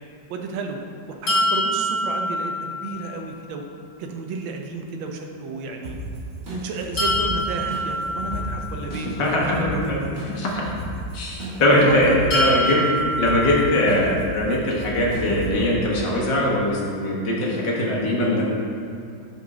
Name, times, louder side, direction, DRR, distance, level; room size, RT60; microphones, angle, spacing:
voice 1, 0.3-0.8 1.1-3.6 4.0-6.0 6.5-9.5 11.8-12.2, right 4 dB, 85° right, 3 dB, 1.6 m, -32 dB
sound 1, 1.3-3.2 7.0-9.0 12.3-14.3, equal, 85° left, 2.2 m, -25 dB
sound 2, 5.8-15.7, right 1 dB, 35° right, 1.7 m, -34 dB
voice 2, 8.9-10.7 11.1-12.9 13.2-18.4, left 1 dB, 65° left, -3 dB, 2.0 m, -21 dB
6.2 x 5.6 x 4.9 m, 2.5 s
omnidirectional pair, 2.1 m